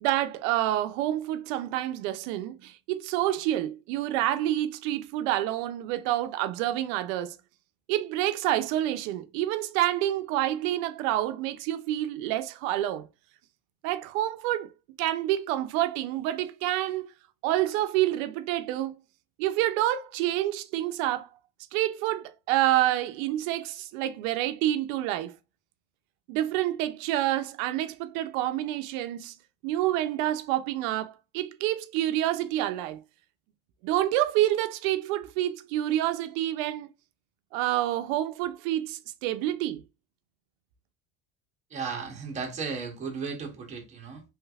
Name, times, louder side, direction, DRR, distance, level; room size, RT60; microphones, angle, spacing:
voice 1, 0.0-7.4 7.9-13.1 13.8-14.7 15.0-17.1 17.4-19.0 19.4-21.3 21.7-25.3 26.3-29.3 29.6-33.0 33.8-36.9 37.5-39.8, right 14 dB, 85° right, 0.5 m, -28 dB
voice 2, 41.7-44.2, right 5 dB, 20° right, 0.8 m, -35 dB
3.2 x 3.1 x 2.3 m
cardioid pair, 160°, 38 cm